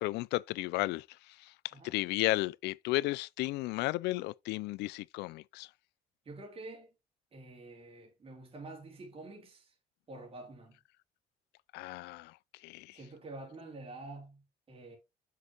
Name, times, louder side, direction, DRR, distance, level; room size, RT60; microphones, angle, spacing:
voice 1, 0.0-5.7 11.7-12.4 12.6-13.0, left 19 dB, 85° left, 0.4 m, -34 dB
voice 2, 6.2-6.9 7.3-9.8 10.1-10.8 12.9-15.0, right 2 dB, 35° right, 3.6 m, -48 dB
7.6 x 6.6 x 2.9 m
cardioid pair, 110°, 17 cm